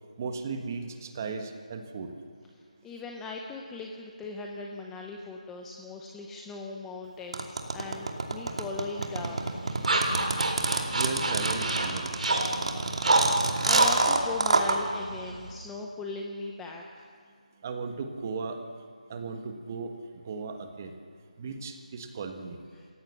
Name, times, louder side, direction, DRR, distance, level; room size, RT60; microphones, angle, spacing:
voice 1, 0.2-2.1 10.9-12.1 17.6-18.6 19.1-19.9 20.2-20.9 21.4-22.6, right 4 dB, 20° right, 6 dB, 1.4 m, -36 dB
voice 2, 2.5-9.5 13.0-16.8 22.7-22.9, left 3 dB, 5° left, 1 dB, 0.6 m, -39 dB
sound 1, 7.3-14.8, right 3 dB, 50° right, 2.7 m, -27 dB
sound 2, 9.0-15.5, right 2 dB, 65° right, 5.2 m, -28 dB
28.5 x 16.0 x 7.1 m, 2.2 s
figure-of-eight pair, 175°, 4 cm